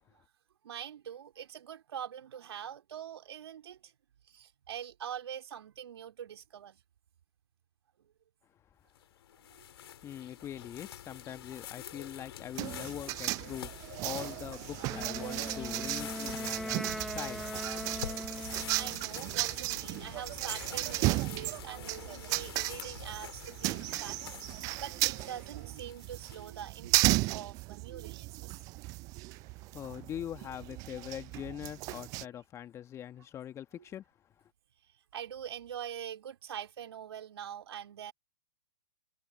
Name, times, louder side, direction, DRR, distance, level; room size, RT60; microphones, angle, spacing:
voice 1, 0.6-3.9 4.2-6.8 8.0-8.1 9.5-9.6 18.4-24.2 24.5-28.6 32.2-32.3 35.1-38.1, right 9 dB, 55° right, 3.6 m, -44 dB
sound 1, 9.0-26.7, left 10 dB, 50° left, 4.1 m, -47 dB
voice 2, 10.0-13.7 14.0-16.8 17.1-17.5 29.7-34.0, left 10 dB, 15° left, 1.9 m, -42 dB
sound 2, 12.6-32.2, right 23 dB, 20° right, 0.5 m, -35 dB
Wind instrument woodwind instrument, 14.9-19.1, equal, ahead, 1.6 m, -40 dB
figure-of-eight pair, 120°, 17 cm